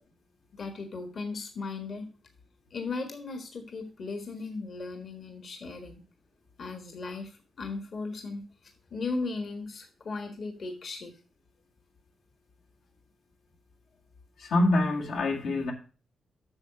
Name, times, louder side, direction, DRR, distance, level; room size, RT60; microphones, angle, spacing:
voice 1, 0.5-2.1 2.7-6.0 6.6-8.4 8.9-11.1, left 3 dB, 55° left, 1.5 m, -37 dB
voice 2, 14.4-15.7, left 2 dB, 85° left, 2.0 m, -25 dB
8.8 x 6.4 x 5.9 m
cardioid pair, 100°, 0 cm